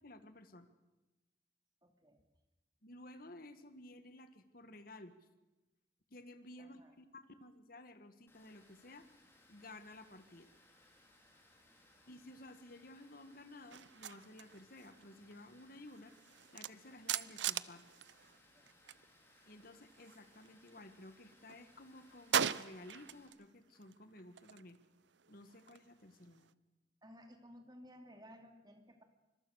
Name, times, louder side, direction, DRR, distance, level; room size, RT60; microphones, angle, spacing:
voice 1, 0.0-0.7 2.8-5.2 6.1-9.1 9.5-10.5 12.1-16.2 16.5-17.9 19.4-24.8 25.3-26.6, left 1 dB, 50° left, 9 dB, 1.9 m, -55 dB
voice 2, 1.8-2.2 6.6-7.0 11.6-12.1 18.3-18.7 27.0-29.0, equal, 25° right, 5 dB, 2.6 m, -58 dB
Water, 8.3-23.3, left 1 dB, 15° left, 4.3 m, -67 dB
sound 1, 13.7-19.0 19.3-20.9 21.3-23.4 23.7-26.5, right 8 dB, 80° right, 0.7 m, -42 dB
25.5 x 22.5 x 6.6 m, 1.1 s
head